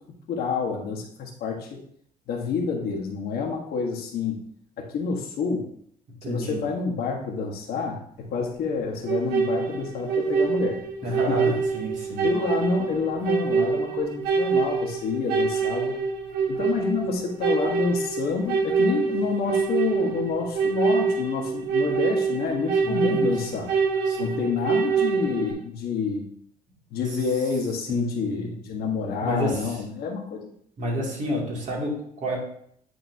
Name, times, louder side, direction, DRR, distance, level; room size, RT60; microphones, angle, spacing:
voice 1, 0.3-1.8 2.3-4.4 4.8-5.6 6.3-11.5 12.2-16.0 16.5-23.7 24.2-26.3 26.9-30.5, left 5 dB, 65° left, 0 dB, 1.4 m, -28 dB
voice 2, 6.2-6.6 11.0-12.3 22.8-23.4 24.1-24.4 27.9-28.5 29.2-29.8 30.8-32.4, equal, 45° right, -3 dB, 2.5 m, -30 dB
sound 1, 9.0-25.5, right 5 dB, 75° right, 1.3 m, -25 dB
9.4 x 3.8 x 2.7 m, 0.67 s
cardioid pair, 110°, 17 cm